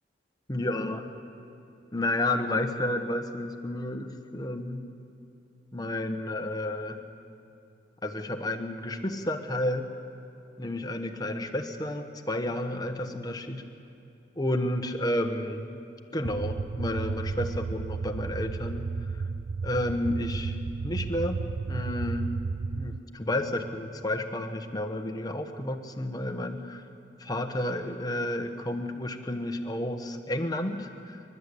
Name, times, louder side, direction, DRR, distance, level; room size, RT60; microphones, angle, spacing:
voice 1, 0.5-1.0 1.9-4.8 5.7-7.0 8.0-9.9 10.6-13.6 14.4-15.6 16.1-18.9 19.1-19.2 19.6-20.5 20.8-21.4 21.7-22.2 22.7-26.8 27.2-31.2, left 1 dB, 20° left, 6 dB, 1.2 m, -31 dB
sound 1, 16.2-23.0, right 4 dB, 65° right, 0.4 m, -33 dB
29.0 x 12.5 x 8.5 m, 2.8 s
head